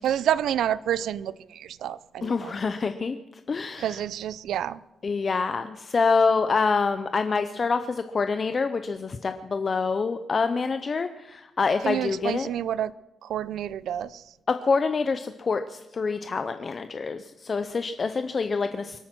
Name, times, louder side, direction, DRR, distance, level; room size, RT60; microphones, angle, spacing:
voice 1, 0.0-2.5 3.8-4.8 11.8-12.9 13.2-14.2, right 10 dB, 85° right, 19 dB, 0.5 m, -28 dB
voice 2, 2.2-3.2 3.5-4.0 5.0-12.5 14.5-19.0, left 4 dB, 30° left, 9 dB, 0.6 m, -26 dB
24.5 x 8.8 x 6.0 m, 0.98 s
wide cardioid pair, 165°, 0 cm